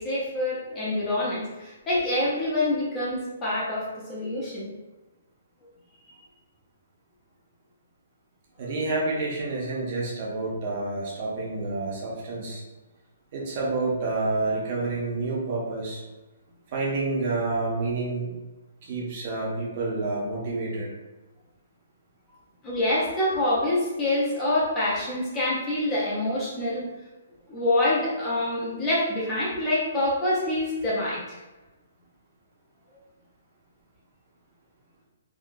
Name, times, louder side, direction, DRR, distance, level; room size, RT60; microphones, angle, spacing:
voice 1, 0.0-4.7 8.6-8.7 22.6-26.9 27.5-31.4, left 1 dB, 15° left, -7 dB, 0.6 m, -26 dB
voice 2, 8.6-12.6 13.3-16.0 16.7-18.3 18.8-20.9, right 3 dB, 35° right, -3 dB, 0.7 m, -29 dB
3.6 x 2.2 x 2.5 m, 1.1 s
hypercardioid pair, 170°, 0 cm